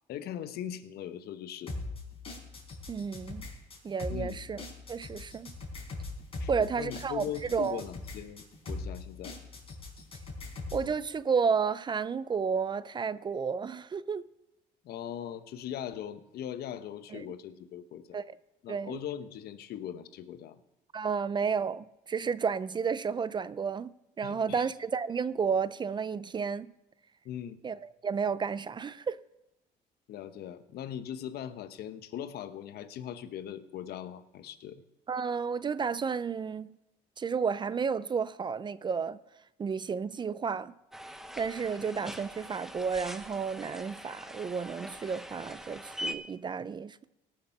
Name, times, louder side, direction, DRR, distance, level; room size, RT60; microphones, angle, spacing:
voice 1, 0.1-1.7 4.1-4.4 6.4-9.4 14.8-18.2 18.6-20.6 24.2-24.6 27.2-27.6 30.1-34.8, left 10 dB, 70° left, 0.9 m, -40 dB
sound 1, 1.7-10.9, left 3 dB, 35° left, 4.5 m, -41 dB
voice 2, 2.9-3.5 3.8-5.5 6.5-7.8 10.7-14.3 17.1-17.3 18.1-18.3 18.7-19.0 20.9-23.9 24.2-26.7 27.6-29.2 35.1-36.8 37.2-39.2 39.6-40.7 41.4-47.0, right 6 dB, 25° right, 0.4 m, -32 dB
sound 2, 40.9-46.2, equal, ahead, 0.9 m, -43 dB
17.5 x 6.7 x 5.7 m
cardioid pair, 110°, 17 cm